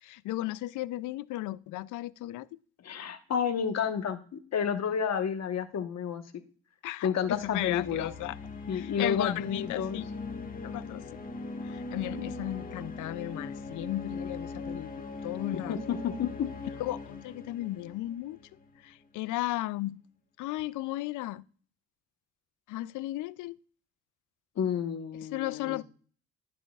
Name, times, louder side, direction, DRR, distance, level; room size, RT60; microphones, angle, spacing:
voice 1, 0.0-2.6 6.8-8.4 8.7-10.1 10.6-11.0 11.6-15.8 16.8-18.4 18.8-20.0 20.4-21.5 22.7-23.6 25.3-25.8, left 16 dB, 85° left, 0.5 m, -35 dB
voice 2, 2.8-6.2 7.0-8.1 8.7-10.0 12.2-12.3 15.5-16.5 24.6-25.8, left 7 dB, 60° left, 1.2 m, -31 dB
sound 1, 7.2-18.8, left 3 dB, 30° left, 1.3 m, -40 dB
12.0 x 6.6 x 2.4 m
cardioid pair, 90°, 30 cm